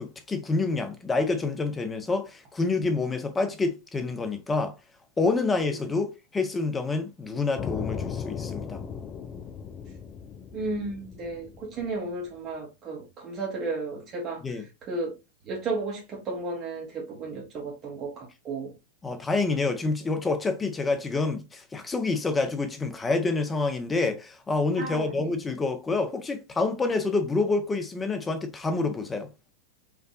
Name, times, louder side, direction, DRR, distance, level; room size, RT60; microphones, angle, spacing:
voice 1, 0.0-4.7 5.2-8.8 14.4-14.7 19.0-29.3, left 3 dB, 15° left, 0.8 m, -27 dB
sound 1, 7.6-12.4, left 7 dB, 30° left, 0.5 m, -37 dB
voice 2, 10.5-14.4 14.9-15.2 15.5-18.7 24.8-25.4, right 3 dB, 35° right, 1.1 m, -33 dB
4.7 x 2.5 x 2.3 m
hypercardioid pair, 95°, 0 cm